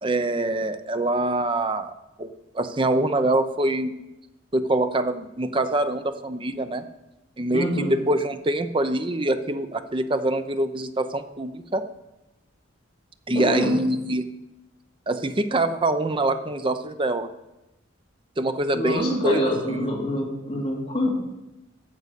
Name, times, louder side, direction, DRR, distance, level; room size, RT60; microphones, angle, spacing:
voice 1, 0.0-1.9 2.2-3.9 4.5-6.8 7.4-11.8 13.3-14.3 15.1-17.3 18.4-19.4 19.7-19.9, right 1 dB, 25° right, 9 dB, 0.6 m, -24 dB
voice 2, 7.5-8.0 13.3-13.7 18.7-21.1, left 1 dB, 30° left, -2 dB, 2.7 m, -26 dB
9.2 x 6.8 x 8.2 m, 0.96 s
head